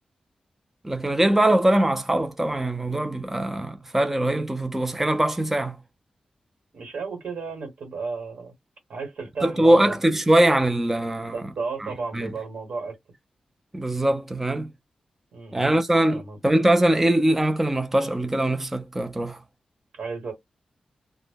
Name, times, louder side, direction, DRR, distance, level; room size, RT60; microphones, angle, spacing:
voice 1, 0.8-5.8 9.4-11.4 11.8-12.3 13.7-14.7 15.5-19.4, right 1 dB, 10° right, 0.4 m, -22 dB
voice 2, 6.7-8.5 8.9-10.0 11.3-13.0 15.3-15.7 16.1-16.4 20.0-20.3, right 4 dB, 85° right, 1.2 m, -33 dB
2.1 x 2.1 x 3.4 m
wide cardioid pair, 130°, 2 cm